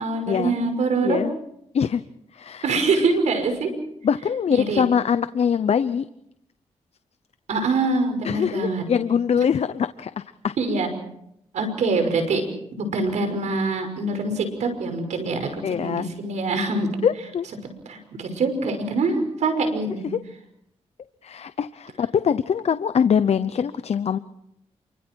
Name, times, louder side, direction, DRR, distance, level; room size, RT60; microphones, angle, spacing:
voice 1, 0.0-1.2 2.6-3.7 4.5-4.8 7.5-8.8 9.4-9.5 10.6-10.9 11.5-12.4 12.7-16.9 17.9-20.0, right 3 dB, 85° right, 6 dB, 5.6 m, -24 dB
voice 2, 1.0-1.3 1.7-2.0 2.3-2.8 4.0-6.0 8.2-10.5 15.6-16.1 17.0-17.5 20.1-20.2 21.2-24.2, left 7 dB, 65° left, 12 dB, 0.8 m, -23 dB
28.0 x 24.5 x 4.6 m, 0.78 s
cardioid pair, 70°, 12 cm